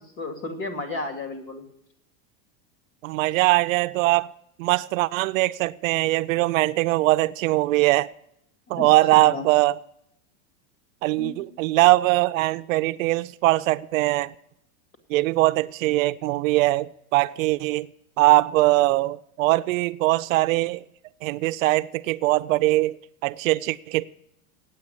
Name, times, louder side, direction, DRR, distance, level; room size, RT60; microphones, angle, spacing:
voice 1, 0.2-1.6 8.7-8.8 9.1-9.5 11.2-11.5, left 3 dB, 50° left, 2.4 m, -33 dB
voice 2, 3.0-4.3 4.6-8.1 8.7-9.8 11.0-14.3 15.1-17.9 18.2-20.8 21.2-24.0, right 19 dB, 70° right, 0.5 m, -21 dB
8.9 x 8.6 x 9.5 m
supercardioid pair, 160°, 42 cm